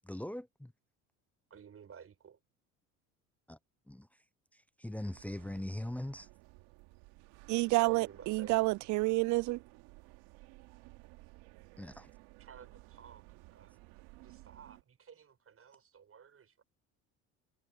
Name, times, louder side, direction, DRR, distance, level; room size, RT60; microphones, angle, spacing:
voice 1, 0.0-0.7 3.5-3.6 3.9-4.1 4.8-6.3 11.8-12.1, left 1 dB, 5° left, 0.8 m, -40 dB
voice 2, 1.5-2.4 7.9-8.7 12.4-13.7 14.2-16.6, right 7 dB, 40° right, 7.2 m, -55 dB
sound 1, 5.0-14.8, right 23 dB, 80° right, 2.8 m, -56 dB
voice 3, 7.5-9.6, right 22 dB, 55° right, 0.4 m, -29 dB
supercardioid pair, 75°, 35 cm